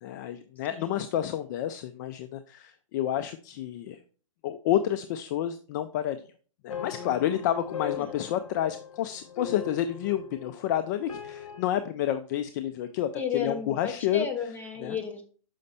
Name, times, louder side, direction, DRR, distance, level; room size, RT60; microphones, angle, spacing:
voice 1, 0.0-4.0 4.4-6.2 6.6-14.3 14.8-15.0, left 11 dB, 35° left, 10 dB, 0.4 m, -29 dB
sound 1, 6.7-11.7, left 7 dB, 75° left, 1.2 m, -40 dB
voice 2, 7.8-8.2 13.1-15.3, left 7 dB, 10° left, 3 dB, 0.9 m, -33 dB
6.4 x 5.3 x 4.1 m, 0.41 s
hypercardioid pair, 145°, 17 cm